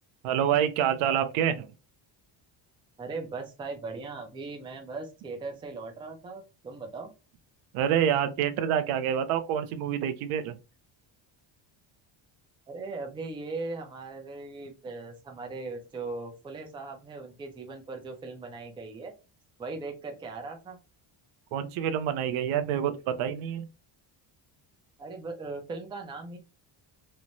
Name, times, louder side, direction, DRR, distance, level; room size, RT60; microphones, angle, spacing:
voice 1, 0.2-1.7 7.7-10.6 21.5-23.7, right 9 dB, 90° right, 0.6 m, -27 dB
voice 2, 3.0-7.1 12.7-19.1 19.6-20.8 25.0-26.4, right 3 dB, 10° right, 0.3 m, -39 dB
3.1 x 2.1 x 2.5 m
cardioid pair, 145°, 48 cm